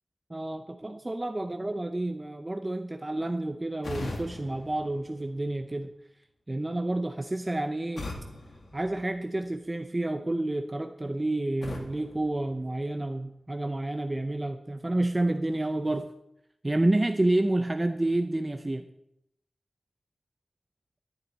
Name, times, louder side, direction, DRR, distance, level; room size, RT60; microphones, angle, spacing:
voice 1, 0.3-5.9 6.5-8.1 8.7-16.1 16.6-18.8, right 1 dB, 25° right, 8 dB, 0.6 m, -29 dB
sound 1, 3.8-5.8 8.0-9.7 11.6-13.2, left 2 dB, 75° left, 1.8 m, -41 dB
12.5 x 10.5 x 4.1 m, 0.79 s
wide cardioid pair, 100°, 0 cm